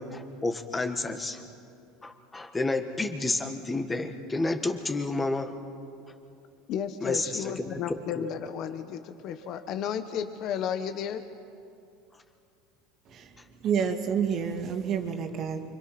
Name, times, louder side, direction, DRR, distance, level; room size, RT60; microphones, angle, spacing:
voice 1, 0.0-1.4 2.0-5.5 7.0-7.8 8.1-8.3, left 2 dB, 15° left, 1.7 m, -30 dB
voice 2, 6.7-11.2, left 8 dB, 50° left, 1.1 m, -33 dB
voice 3, 13.1-15.8, right 7 dB, 40° right, 2.4 m, -29 dB
29.0 x 25.0 x 6.0 m
supercardioid pair, 140°, 0 cm